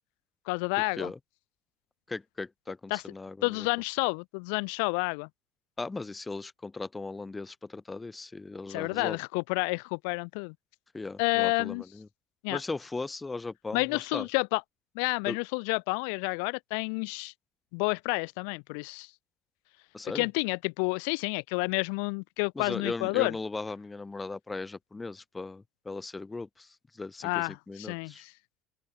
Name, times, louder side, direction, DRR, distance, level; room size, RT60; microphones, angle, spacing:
voice 1, 0.5-1.1 2.9-3.0 3.4-5.3 8.7-10.5 11.2-11.8 12.4-12.6 13.7-14.6 14.9-17.3 17.7-19.1 20.1-23.3 27.2-28.3, left 40 dB or more, 90° left, 3.3 m, -30 dB
voice 2, 2.1-3.7 5.8-9.2 10.9-12.1 12.5-14.3 15.2-15.4 19.9-20.3 22.5-28.2, left 3 dB, 15° left, 3.0 m, -38 dB
open air
cardioid pair, 130°, 0 cm